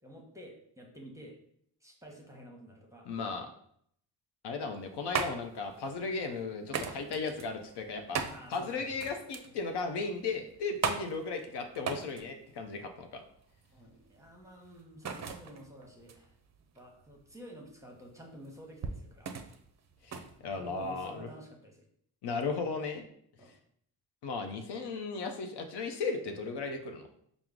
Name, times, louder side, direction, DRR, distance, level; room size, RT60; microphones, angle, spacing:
voice 1, 0.0-1.4 1.8-3.1 8.3-9.1 9.4-9.5 13.7-16.4 16.7-19.4 20.6-21.9 23.4-23.6 26.5-26.7, equal, 5° right, 0 dB, 0.8 m, -51 dB
voice 2, 3.1-3.5 4.4-8.2 8.5-13.2 20.0-21.3 22.2-23.0 24.2-27.1, left 4 dB, 70° left, 5 dB, 0.6 m, -36 dB
sound 1, 4.6-21.2, right 6 dB, 40° right, 0.5 m, -40 dB
4.5 x 2.0 x 3.6 m, 0.68 s
cardioid pair, 70°, 43 cm